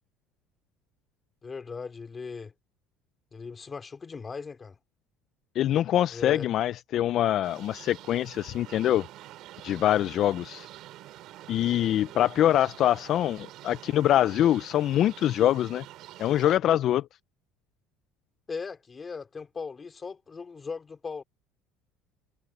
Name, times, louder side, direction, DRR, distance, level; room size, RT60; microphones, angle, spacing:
voice 1, 1.4-2.5 3.3-4.8 6.1-6.5 12.2-12.3 18.5-21.2, left 5 dB, 20° left, 3.2 m, -38 dB
voice 2, 5.6-9.0 9.6-10.7 11.5-15.8 16.2-17.1, left 12 dB, 45° left, 0.4 m, -24 dB
sound 1, 7.4-16.6, right 15 dB, 55° right, 4.1 m, -47 dB
cardioid pair, 140°, 0 cm